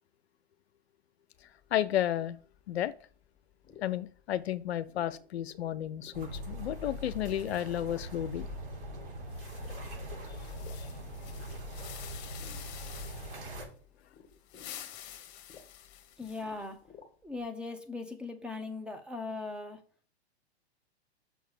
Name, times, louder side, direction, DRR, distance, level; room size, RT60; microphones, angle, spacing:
sound 1, 1.3-17.5, left 6 dB, 15° left, 1.9 m, -60 dB
voice 1, 1.7-2.4 2.7-2.9 3.8-8.5 10.8-10.9, left 11 dB, 70° left, 0.6 m, -32 dB
sound 2, 6.1-13.6, equal, 40° right, 3.8 m, -41 dB
sound 3, 9.3-13.5 14.3-16.7, left 11 dB, 35° left, 1.4 m, -49 dB
voice 2, 16.2-16.8 17.2-19.8, left 3 dB, 5° right, 1.0 m, -39 dB
6.3 x 4.6 x 6.5 m
hypercardioid pair, 110°, 33 cm